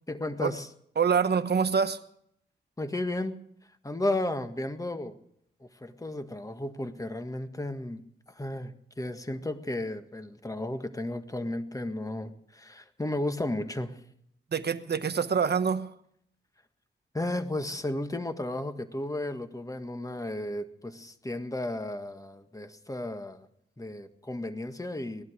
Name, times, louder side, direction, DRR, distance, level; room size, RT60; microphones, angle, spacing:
voice 1, 0.1-0.7 2.8-3.4 3.8-5.2 5.6-8.0 8.3-14.0 17.1-23.5 23.8-25.2, left 1 dB, 15° left, 1.6 m, -34 dB
voice 2, 1.0-2.0 14.5-15.9, right 6 dB, 60° right, 1.1 m, -25 dB
18.5 x 12.0 x 6.4 m
cardioid pair, 80°, 20 cm